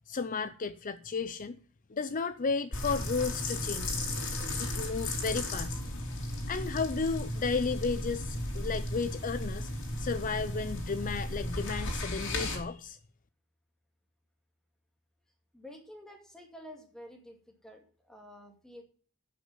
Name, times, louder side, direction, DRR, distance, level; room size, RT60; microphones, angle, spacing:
voice 1, 0.1-1.6 1.9-3.9 4.6-5.8 6.5-9.7 10.0-13.0, left 4 dB, 40° left, 0.5 m, -33 dB
sound 1, 2.7-12.6, left 1 dB, 60° left, 3.2 m, -35 dB
voice 2, 15.5-17.4 17.6-18.8, equal, 5° left, 2.4 m, -50 dB
11.0 x 6.1 x 7.6 m
head